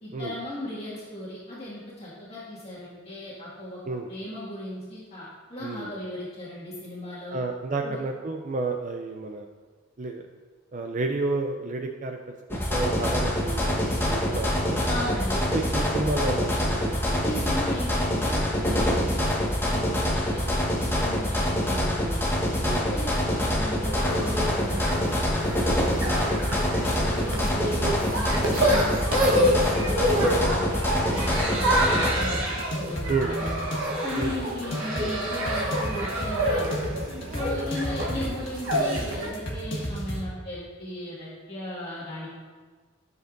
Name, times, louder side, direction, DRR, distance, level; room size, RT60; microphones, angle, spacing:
voice 1, 0.0-3.8 4.1-7.4 7.8-8.0 14.9-15.4 17.2-20.5 20.8-22.2 22.7-26.4 26.8-33.6 34.0-36.8 37.3-42.3, left 1 dB, 30° left, -8 dB, 1.9 m, -37 dB
voice 2, 7.3-9.5 10.0-10.3 10.7-14.8 15.5-17.6 20.4-20.6 22.7-23.0 25.9-26.2 27.0-27.2 33.1-33.4 34.2-34.3, right 3 dB, 35° right, 4 dB, 0.4 m, -31 dB
sound 1, 12.5-32.1, equal, 10° left, 1.2 m, -25 dB
sound 2, 23.8-39.3, equal, 75° right, 1.2 m, -28 dB
sound 3, 32.2-40.2, equal, 65° left, 1.5 m, -33 dB
11.5 x 6.8 x 2.6 m, 1.4 s
head